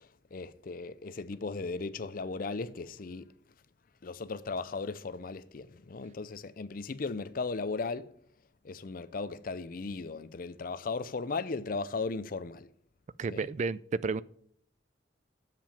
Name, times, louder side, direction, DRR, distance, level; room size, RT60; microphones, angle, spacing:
voice 1, 0.0-3.3 4.0-8.1 8.6-12.7 13.3-13.5, left 4 dB, 50° left, 0.5 m, -37 dB
voice 2, 13.2-14.2, right 4 dB, 40° right, 0.3 m, -31 dB
7.6 x 7.3 x 7.5 m
head